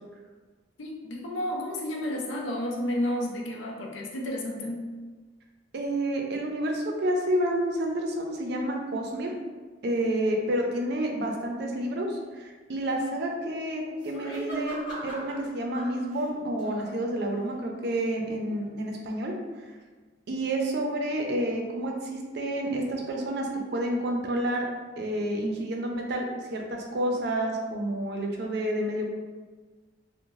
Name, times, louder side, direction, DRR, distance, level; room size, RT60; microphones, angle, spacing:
voice 1, 0.8-4.8, left 1 dB, 90° left, 0 dB, 0.5 m, -31 dB
voice 2, 5.7-9.3 9.8-19.3 20.3-24.7 25.0-29.1, right 1 dB, 60° right, 1 dB, 0.4 m, -29 dB
sound 1, 13.8-15.4 15.7-16.9 17.5-17.6, equal, 65° left, 1.1 m, -39 dB
2.5 x 2.1 x 3.0 m, 1.4 s
head